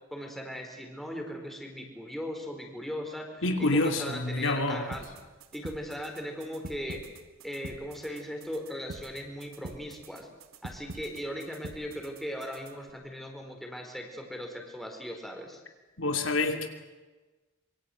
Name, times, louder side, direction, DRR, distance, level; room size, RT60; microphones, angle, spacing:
voice 1, 0.1-5.1 5.5-7.0 7.4-10.3 10.6-15.6, equal, ahead, 2 dB, 4.5 m, -38 dB
voice 2, 3.4-4.9 16.0-16.7, left 2 dB, 65° left, 5 dB, 2.7 m, -27 dB
sound 1, 4.9-12.9, right 2 dB, 85° right, 1.9 m, -46 dB
26.0 x 24.0 x 8.0 m, 1.2 s
head